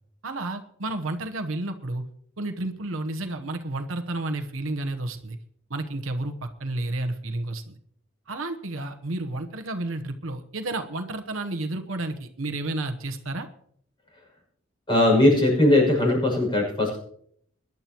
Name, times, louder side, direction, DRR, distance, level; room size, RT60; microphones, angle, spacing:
voice 1, 0.2-2.0 2.4-5.4 5.7-7.8 8.3-13.5, right 2 dB, 70° right, 7 dB, 1.0 m, -31 dB
voice 2, 14.9-17.0, left 1 dB, 25° left, -1 dB, 6.3 m, -19 dB
22.0 x 11.0 x 3.0 m, 0.65 s
head